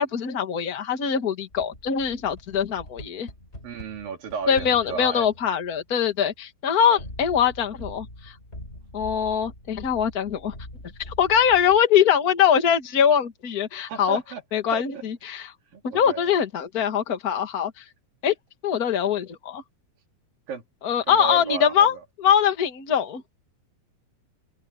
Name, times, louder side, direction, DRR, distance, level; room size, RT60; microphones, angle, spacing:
voice 1, 0.0-3.3 4.5-8.3 8.9-10.5 11.1-14.2 14.5-15.5 15.8-17.8 18.2-18.3 18.6-19.6 20.8-23.2, left 8 dB, 35° left, 1.8 m, -22 dB
sound 1, 1.5-6.2 7.0-11.8, left 1 dB, 15° left, 7.5 m, -43 dB
voice 2, 3.6-5.3 6.9-7.0 13.9-14.4 14.7-14.8 15.7-16.3 20.5-20.6 21.1-22.0, right 6 dB, 80° right, 4.8 m, -33 dB
open air
omnidirectional pair, 4.0 m